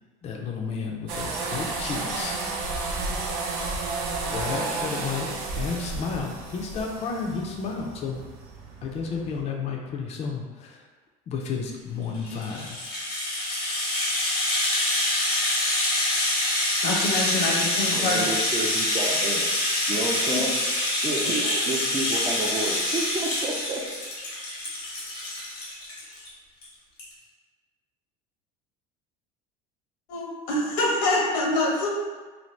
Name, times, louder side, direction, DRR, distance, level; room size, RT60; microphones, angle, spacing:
voice 1, 0.2-2.4 4.3-5.3 5.5-8.2 8.8-10.8 11.3-12.9, left 5 dB, 35° left, 0 dB, 0.5 m, -32 dB
sound 1, 1.1-9.4, right 3 dB, 75° right, 0.6 m, -32 dB
Rattle (instrument), 12.1-26.3 26.6-26.7 27.0-27.1, left 1 dB, 90° left, 1.1 m, -26 dB
voice 2, 16.8-18.3 20.2-20.5 21.2-21.5 30.1-31.9, left 2 dB, 75° left, -2 dB, 0.9 m, -26 dB
voice 3, 17.9-20.5 21.0-23.8, right 2 dB, 25° right, 0 dB, 0.4 m, -31 dB
2.6 x 2.6 x 3.1 m, 1.3 s
supercardioid pair, 100°, 19 cm